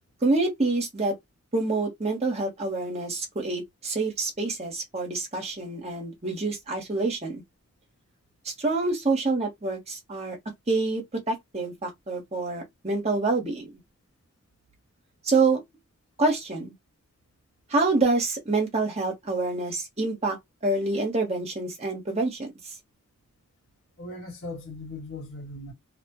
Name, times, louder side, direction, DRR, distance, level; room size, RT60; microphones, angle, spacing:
voice 1, 0.2-1.1 1.5-7.4 8.4-10.4 10.7-13.7 15.2-15.6 16.2-16.7 17.7-20.4 20.6-22.5, right 3 dB, 30° right, 1.0 m, -27 dB
voice 2, 24.0-25.7, left 2 dB, 70° left, 1.5 m, -38 dB
2.8 x 2.1 x 2.9 m
head